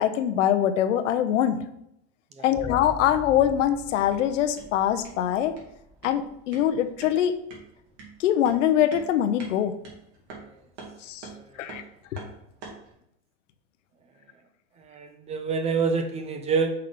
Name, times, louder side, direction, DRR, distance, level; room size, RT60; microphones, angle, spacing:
voice 1, 0.0-1.6 2.4-5.5 6.0-7.4 8.2-9.7 11.0-11.3 11.6-11.8, left 10 dB, 80° left, 9 dB, 0.7 m, -23 dB
sound 1, 2.5-6.8 7.0-7.1, left 3 dB, 25° left, 0.6 m, -42 dB
sound 2, 3.8-12.9, right 4 dB, 60° right, 2.3 m, -47 dB
voice 2, 14.8-16.7, right 5 dB, 20° right, 6 dB, 0.4 m, -26 dB
5.8 x 3.5 x 5.1 m, 0.77 s
supercardioid pair, 130°, 37 cm